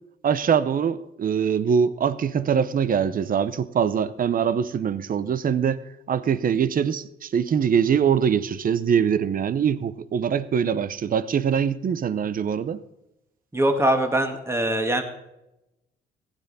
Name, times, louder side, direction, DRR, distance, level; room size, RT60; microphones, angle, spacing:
voice 1, 0.2-5.8 6.1-12.8, right 7 dB, 45° right, 15 dB, 0.7 m, -23 dB
voice 2, 13.5-15.0, right 1 dB, 15° right, 5 dB, 2.0 m, -22 dB
16.0 x 9.8 x 4.1 m, 0.91 s
cardioid pair, 90°, 20 cm